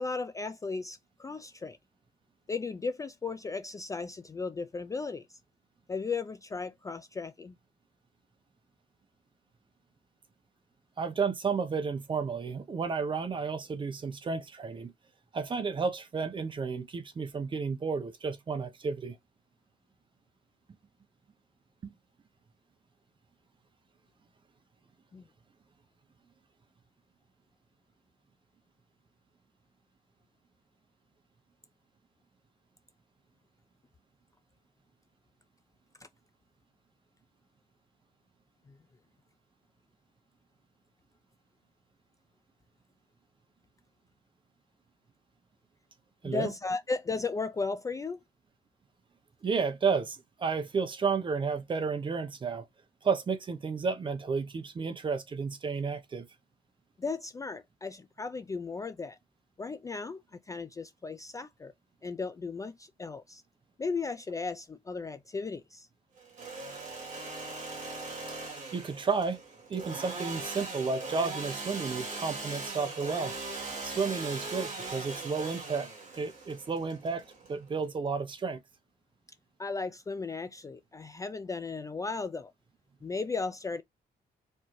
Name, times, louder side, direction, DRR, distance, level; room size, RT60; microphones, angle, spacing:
voice 1, 0.0-1.8 2.5-5.4 5.9-7.6 25.1-25.2 38.7-38.8 46.2-48.2 57.0-59.2 59.6-61.7 62.0-63.4 63.8-65.9 79.6-82.5 83.0-83.8, left 4 dB, 20° left, 0.3 m, -36 dB
voice 2, 11.0-14.9 15.3-19.2 21.8-21.9 46.2-46.5 49.4-52.7 53.0-56.3 68.7-69.4 69.7-73.3 73.8-75.9 76.2-78.6, right 5 dB, 30° right, 0.7 m, -32 dB
Engine / Sawing, 66.2-77.9, right 3 dB, 50° right, 1.8 m, -40 dB
4.4 x 2.7 x 3.0 m
wide cardioid pair, 160°, 17 cm